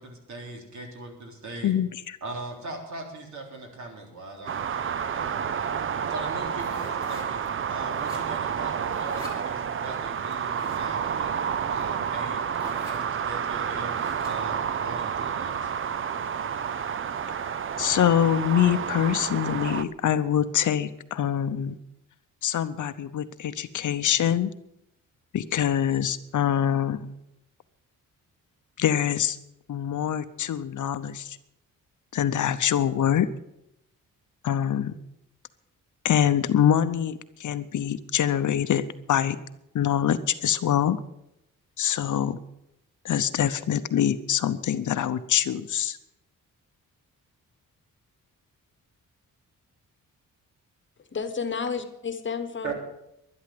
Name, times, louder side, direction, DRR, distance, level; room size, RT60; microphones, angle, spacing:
voice 1, 0.0-1.7 2.2-5.7 6.1-13.9 14.2-15.7 52.6-52.7, right 2 dB, 60° right, 2 dB, 3.6 m, -40 dB
voice 2, 1.6-2.2 17.8-21.8 22.4-24.5 25.3-27.1 28.8-29.4 29.7-31.4 32.1-33.3 34.4-35.0 36.0-39.4 39.7-41.0 41.8-42.4 43.0-46.0, left 10 dB, 60° left, 12 dB, 0.8 m, -24 dB
sound 1, 4.5-19.8, right 7 dB, 40° right, 0.5 m, -30 dB
sound 2, 6.5-7.5 7.8-8.5 8.8-9.4 10.3-10.9 11.8-11.9 12.2-12.3 12.5-13.1 13.9-14.5, equal, 15° right, 4.0 m, -42 dB
voice 3, 51.1-52.7, left 5 dB, 35° left, 9 dB, 1.2 m, -31 dB
11.5 x 11.5 x 7.8 m, 0.83 s
wide cardioid pair, 150°, 33 cm